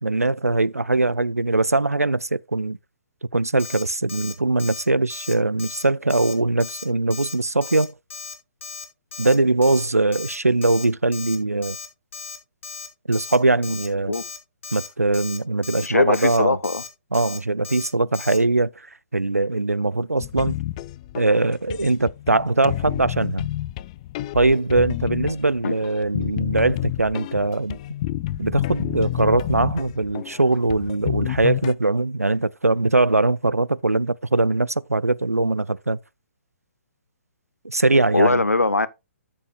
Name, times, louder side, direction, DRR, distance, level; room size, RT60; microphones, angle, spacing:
voice 1, 0.0-2.8 3.3-7.9 9.2-11.8 13.1-14.2 14.7-16.6 17.1-18.9 19.1-20.5 21.1-23.4 24.3-27.8 28.4-36.0 37.6-38.4, right 2 dB, 90° right, 0.5 m, -21 dB
Alarm, 3.6-3.8 4.1-4.3 4.6-4.8 5.1-5.3 5.6-5.8 6.1-6.3 6.6-6.8 7.1-7.3 7.6-7.9 8.1-8.3 8.6-8.8 9.1-9.4 9.6-9.9 10.1-10.4 10.6-10.9 11.1-11.4 11.6-11.9 12.1-12.4 12.6-12.9 13.1-13.4 13.6-13.9 14.1-14.4 14.6-14.9 15.1-15.4 15.6-15.9 16.1-16.4 16.6-16.9 17.1-17.4 17.6-17.9 18.1-18.4, left 5 dB, 55° left, 3.1 m, -36 dB
voice 2, 15.8-16.8 25.6-25.7 38.1-38.9, left 2 dB, 80° left, 0.9 m, -20 dB
sound 1, 20.2-31.7, left 15 dB, 25° left, 0.4 m, -30 dB
13.0 x 6.9 x 2.3 m
figure-of-eight pair, 130°, 8 cm